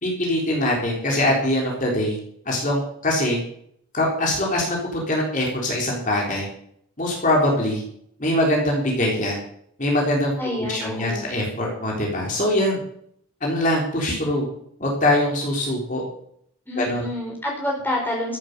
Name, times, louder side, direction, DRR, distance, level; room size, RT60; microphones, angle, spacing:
voice 1, 0.0-2.2 2.5-3.4 3.9-6.5 7.0-7.8 8.2-9.4 9.8-10.3 10.7-12.8 13.4-14.5 14.8-16.0 16.8-17.0, left 1 dB, 35° left, -2 dB, 3.6 m, -22 dB
voice 2, 10.4-11.3 16.7-18.4, left 1 dB, 10° left, -2 dB, 4.1 m, -28 dB
14.0 x 8.4 x 6.6 m, 0.66 s
head